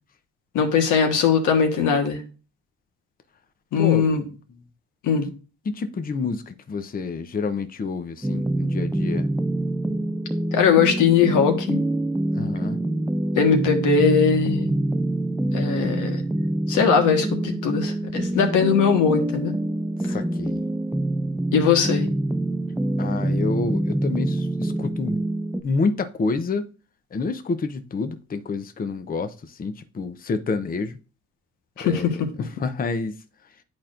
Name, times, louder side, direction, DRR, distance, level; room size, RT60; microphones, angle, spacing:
voice 1, 0.5-2.2 3.7-4.2 5.0-5.3 10.5-11.8 13.3-14.7 15.5-16.2 16.7-19.5 21.5-22.1 31.8-32.1, left 6 dB, 85° left, 1.5 m, -20 dB
voice 2, 3.8-4.3 5.7-9.3 12.3-12.8 20.0-20.6 23.0-25.2 25.6-26.7 27.1-31.0 31.8-33.2, left 4 dB, 30° left, 0.7 m, -28 dB
sound 1, 8.2-25.6, right 1 dB, 5° right, 0.4 m, -25 dB
10.5 x 4.3 x 2.5 m
cardioid pair, 90°, 30 cm